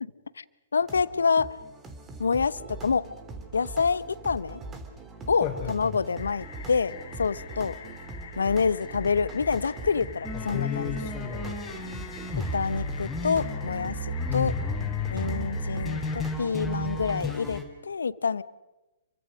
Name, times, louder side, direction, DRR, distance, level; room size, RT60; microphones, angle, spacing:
voice 1, 0.7-1.5 2.2-3.1 3.5-4.6 5.3-7.8 8.4-11.0 12.5-14.0 14.3-14.5 15.1-18.4, left 5 dB, 75° left, 18 dB, 0.8 m, -27 dB
sound 1, 0.8-17.6, right 3 dB, 20° right, 3.3 m, -41 dB
voice 2, 5.4-6.0 10.3-11.7 14.3-15.2, left 10 dB, 25° left, -4 dB, 3.8 m, -33 dB
sound 2, 6.1-16.4, left 8 dB, 60° left, 3.5 m, -46 dB
sound 3, 10.2-17.6, left 1 dB, 5° left, 5.3 m, -34 dB
28.0 x 24.0 x 6.4 m, 1.1 s
figure-of-eight pair, 115°, 0 cm